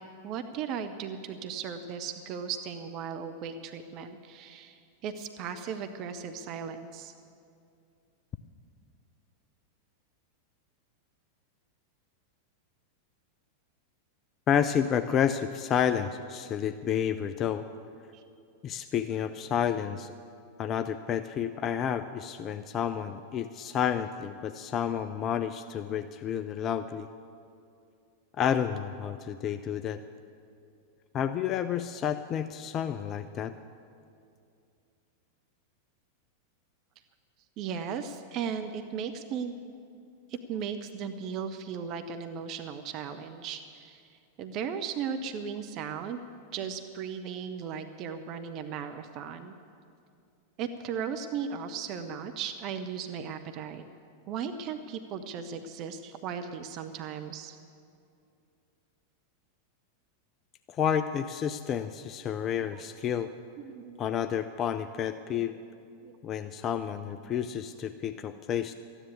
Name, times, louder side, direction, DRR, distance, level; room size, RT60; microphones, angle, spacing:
voice 1, 0.2-7.1 18.1-18.2 37.6-39.5 40.3-44.0 44.4-46.2 46.5-49.5 50.6-53.8 54.3-57.6 63.6-64.0 66.0-66.4, right 7 dB, 40° right, 8 dB, 0.7 m, -36 dB
voice 2, 14.5-17.7 18.6-20.1 20.6-27.1 28.4-30.0 31.1-33.5 60.7-63.3 64.0-65.5 66.2-68.7, left 8 dB, 30° left, 10 dB, 0.4 m, -30 dB
14.0 x 9.9 x 8.3 m, 2.5 s
figure-of-eight pair, 90°, 0 cm